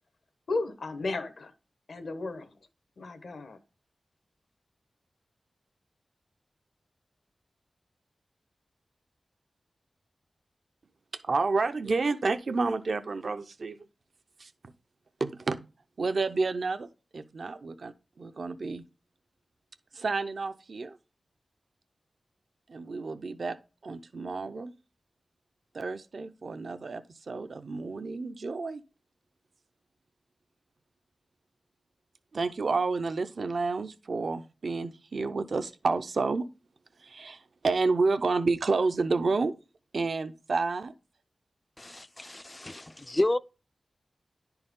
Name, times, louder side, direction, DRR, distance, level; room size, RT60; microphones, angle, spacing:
voice 1, 0.5-1.5 1.9-2.5 3.0-3.6, left 3 dB, 75° left, 1.1 m, -34 dB
voice 2, 11.1-13.8 14.4-14.5 15.2-15.6 16.0-16.9 17.1-18.8 19.9-21.0 22.7-23.6 23.8-24.7 25.7-28.8 32.3-36.4 37.0-39.5 39.9-40.9, right 3 dB, 65° right, 0.5 m, -30 dB
voice 3, 41.8-43.4, left 1 dB, 20° left, 0.4 m, -30 dB
10.5 x 4.4 x 3.7 m
wide cardioid pair, 95°, 0 cm